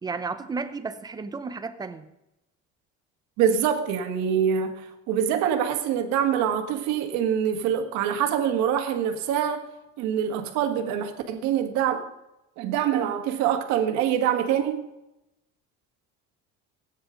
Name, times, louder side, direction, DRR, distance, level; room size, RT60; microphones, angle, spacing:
voice 1, 0.0-2.1, right 4 dB, 15° right, 0.6 m, -33 dB
voice 2, 3.4-9.6 10.0-12.0 12.6-14.8, right 9 dB, 75° right, 1.7 m, -25 dB
17.0 x 9.4 x 3.8 m
cardioid pair, 170°, 29 cm